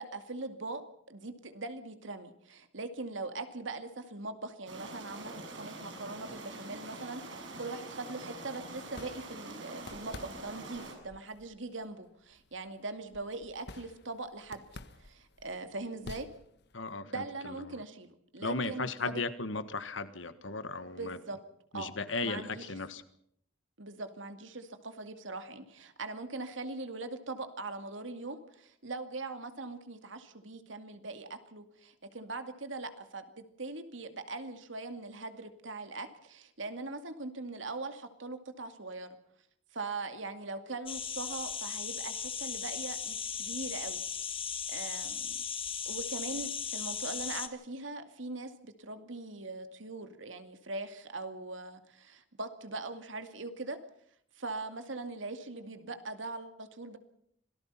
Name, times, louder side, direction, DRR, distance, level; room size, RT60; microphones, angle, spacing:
voice 1, 0.0-14.6 15.0-16.3 17.0-19.2 21.0-21.4 21.7-21.9 22.2-22.6 23.8-39.1 39.7-44.0 44.7-45.4 45.9-53.8 54.4-57.0, right 3 dB, 90° right, 8 dB, 2.4 m, -41 dB
sound 1, 4.7-10.9, right 2 dB, 75° right, 6.8 m, -45 dB
sound 2, 8.5-17.0, left 2 dB, 65° left, 1.4 m, -52 dB
voice 2, 16.7-17.8 18.4-21.2 21.7-23.0, left 3 dB, 80° left, 13 dB, 1.4 m, -36 dB
sound 3, 40.9-47.5, left 7 dB, 30° left, 1.7 m, -37 dB
26.5 x 18.5 x 5.7 m, 0.69 s
head